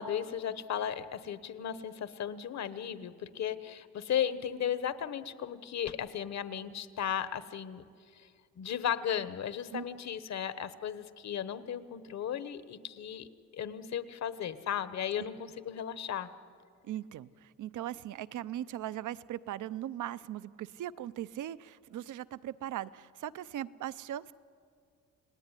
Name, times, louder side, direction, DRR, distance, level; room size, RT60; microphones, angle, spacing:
voice 1, 0.0-7.8 8.2-8.3 8.6-13.3 13.5-16.3, left 9 dB, 60° left, 13 dB, 1.2 m, -35 dB
voice 2, 16.8-24.3, right 12 dB, 70° right, 16 dB, 0.7 m, -39 dB
29.5 x 18.5 x 9.9 m, 2.3 s
wide cardioid pair, 160°, 31 cm